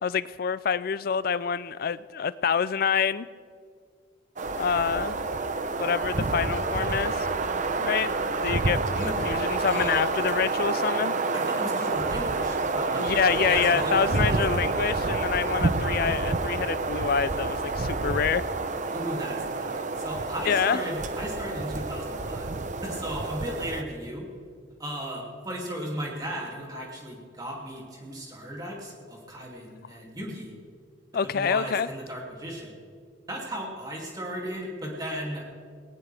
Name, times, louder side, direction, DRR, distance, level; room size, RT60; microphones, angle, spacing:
voice 1, 0.0-3.3 4.6-5.2 5.7-7.3 7.8-11.2 13.0-18.4 20.4-20.8 31.1-31.9, left 7 dB, 50° left, 17 dB, 0.4 m, -27 dB
sound 1, 4.4-23.8, right 3 dB, 40° right, 0.7 m, -28 dB
voice 2, 9.6-10.0 11.3-14.4 18.9-22.5 22.8-24.3 24.8-30.5 31.2-32.8 33.3-35.4, right 1 dB, 20° right, -2 dB, 2.6 m, -36 dB
19.0 x 18.0 x 3.4 m, 2.1 s
head